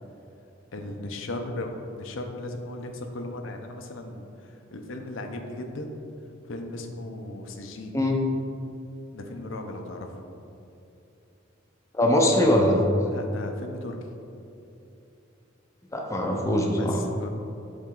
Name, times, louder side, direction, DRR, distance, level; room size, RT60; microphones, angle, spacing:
voice 1, 0.7-6.0 6.5-8.0 9.1-10.2 13.1-14.0 16.8-17.3, left 2 dB, 75° left, 4 dB, 0.6 m, -36 dB
voice 2, 11.9-12.8 15.9-17.0, left 1 dB, 15° left, 0 dB, 0.5 m, -22 dB
7.3 x 4.0 x 3.7 m, 2.8 s
head